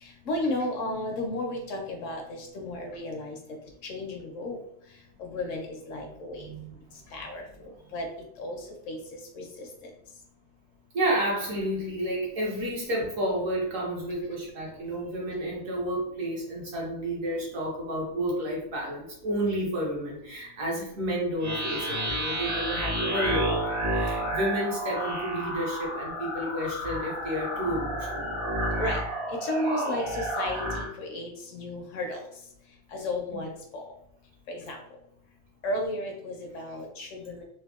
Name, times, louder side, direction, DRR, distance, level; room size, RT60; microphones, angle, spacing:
voice 1, 0.0-3.4 3.8-4.6 5.2-6.5 7.1-7.4 7.9-8.1 8.4-8.6 8.9-9.0 9.4-9.7 28.8-29.0 29.3-32.2 32.9-33.8 34.5-34.8 35.6-37.4, left 1 dB, 70° left, 2 dB, 0.8 m, -33 dB
voice 2, 10.9-28.4 33.3-33.4, right 1 dB, 65° right, -3 dB, 1.3 m, -31 dB
sound 1, 21.4-30.9, right 1 dB, 45° right, 0.9 m, -30 dB
3.5 x 2.2 x 2.3 m, 0.78 s
omnidirectional pair, 1.5 m